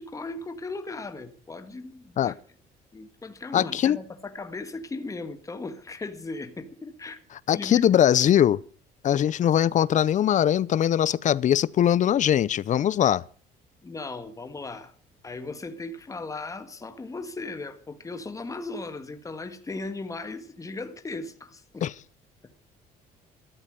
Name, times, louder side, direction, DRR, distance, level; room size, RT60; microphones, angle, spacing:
voice 1, 0.0-2.4 2.9-7.2 7.5-7.8 13.8-14.9 15.2-21.8, left 3 dB, 20° left, 1.7 m, -37 dB
voice 2, 3.5-4.0 7.5-8.6 9.0-13.2 21.8-21.9, left 10 dB, 45° left, 0.6 m, -21 dB
14.0 x 13.0 x 6.4 m
cardioid pair, 110°, 17 cm